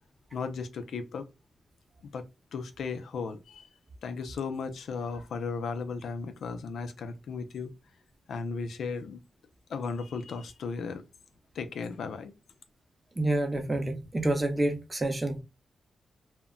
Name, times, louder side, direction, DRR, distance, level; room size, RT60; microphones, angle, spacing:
voice 1, 0.3-1.2 2.1-2.2 2.5-3.7 4.0-7.7 8.3-9.2 9.7-11.0 11.5-12.3, left 4 dB, 80° left, 0.4 m, -35 dB
voice 2, 13.2-15.4, right 1 dB, 25° right, 0.7 m, -28 dB
2.1 x 2.1 x 3.6 m
cardioid pair, 70°, 0 cm